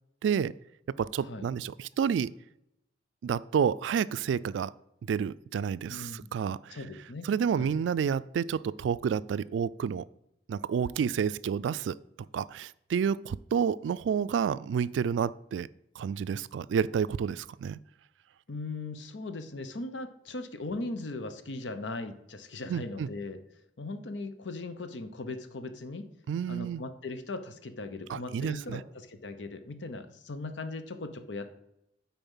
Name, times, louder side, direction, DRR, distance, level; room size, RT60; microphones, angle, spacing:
voice 1, 0.2-0.5 1.0-2.3 3.2-4.7 5.1-6.8 7.2-10.0 10.5-11.9 12.3-15.7 16.0-17.8 22.7-23.1 26.3-26.8 28.1-28.8, right 7 dB, 90° right, 18 dB, 0.3 m, -29 dB
voice 2, 5.9-6.3 6.7-7.3 7.6-7.7 18.5-23.4 23.8-26.1 26.5-31.6, left 2 dB, 80° left, 9 dB, 0.8 m, -39 dB
9.1 x 4.3 x 5.5 m, 0.83 s
head